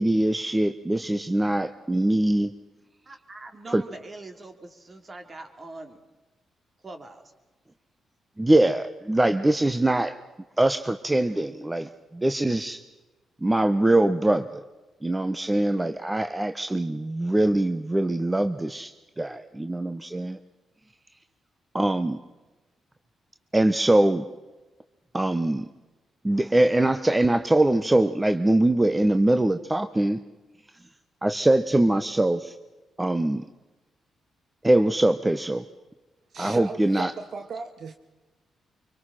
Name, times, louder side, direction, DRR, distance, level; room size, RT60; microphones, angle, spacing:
voice 1, 0.0-2.5 3.7-3.8 8.4-10.2 10.6-12.8 13.4-14.6 15.0-20.4 21.7-22.2 23.5-24.2 25.1-25.7 26.2-30.2 31.2-32.5 33.0-33.4 34.6-35.6 36.4-37.1, right 1 dB, 20° right, 1.1 m, -23 dB
voice 2, 3.0-6.0 6.8-7.2, right 2 dB, 40° right, 3.2 m, -42 dB
voice 3, 36.3-38.0, right 4 dB, 65° right, 1.2 m, -36 dB
24.5 x 24.5 x 5.8 m
hypercardioid pair, 45°, 0 cm